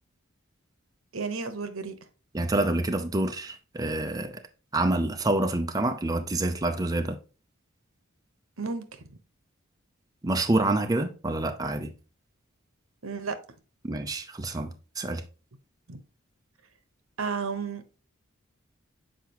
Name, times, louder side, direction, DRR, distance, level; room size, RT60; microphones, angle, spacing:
voice 1, 1.1-1.9 8.6-8.8 9.1-9.2 13.0-13.4 15.9-16.0 17.2-18.0, right 4 dB, 80° right, 1.0 m, -32 dB
voice 2, 2.3-4.4 4.7-7.2 10.2-11.9 13.8-14.7 15.0-15.2, right 2 dB, 20° right, 0.5 m, -27 dB
7.5 x 4.6 x 2.9 m
head